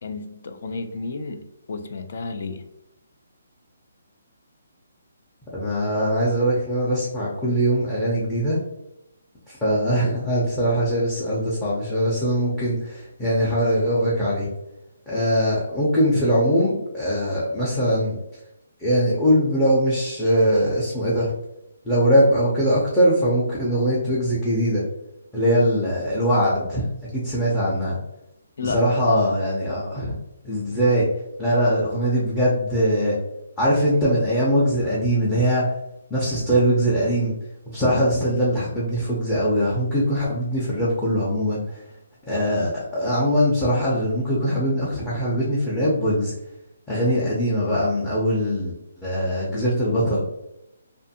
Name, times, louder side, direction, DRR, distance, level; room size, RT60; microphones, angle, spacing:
voice 1, 0.0-2.7 28.6-28.9, left 4 dB, 55° left, 7 dB, 0.4 m, -32 dB
voice 2, 5.5-8.6 9.5-14.5 15.1-18.2 18.8-21.3 21.8-24.8 25.3-28.0 28.6-30.1 30.4-31.1 31.4-33.2 33.6-35.7 36.1-37.3 37.7-41.8 42.2-46.3 46.9-50.2, equal, 5° left, -8 dB, 0.5 m, -21 dB
2.5 x 2.5 x 2.7 m, 0.87 s
hypercardioid pair, 165°, 0 cm